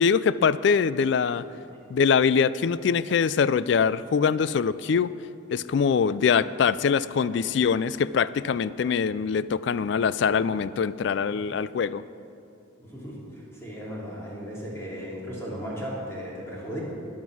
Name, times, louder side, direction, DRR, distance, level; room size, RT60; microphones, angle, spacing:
voice 1, 0.0-1.5 1.9-5.1 5.5-12.0, left 6 dB, 60° left, 17 dB, 0.3 m, -23 dB
voice 2, 12.8-16.8, equal, 15° left, -5 dB, 3.0 m, -36 dB
21.5 x 7.4 x 6.2 m, 2.6 s
head